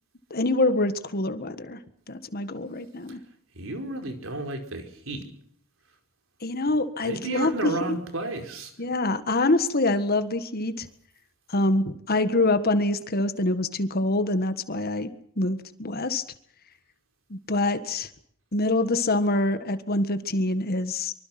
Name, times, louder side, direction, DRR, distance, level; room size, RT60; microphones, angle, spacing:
voice 1, 0.3-1.8 2.1-3.2 6.4-7.7 8.8-10.9 11.5-15.1 15.4-16.2 17.3-18.1 18.5-21.1, left 2 dB, 50° left, 1.6 m, -25 dB
voice 2, 3.5-5.3 7.0-8.7, right 2 dB, 70° right, 5.0 m, -32 dB
25.0 x 24.5 x 6.0 m
head